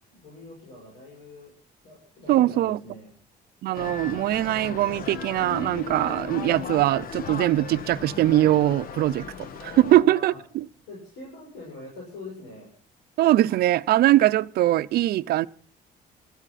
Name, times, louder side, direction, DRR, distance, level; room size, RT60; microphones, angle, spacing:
voice 1, 0.1-1.5 1.8-3.1 9.8-10.4 10.9-12.7, left 2 dB, 85° left, 7.7 m, -43 dB
voice 2, 2.3-2.8 3.6-9.3 9.6-10.6 13.2-15.5, right 14 dB, 65° right, 0.6 m, -21 dB
sound 1, 3.7-10.0, left 7 dB, 60° left, 1.2 m, -36 dB
21.0 x 13.5 x 4.2 m
cardioid pair, 110°, 17 cm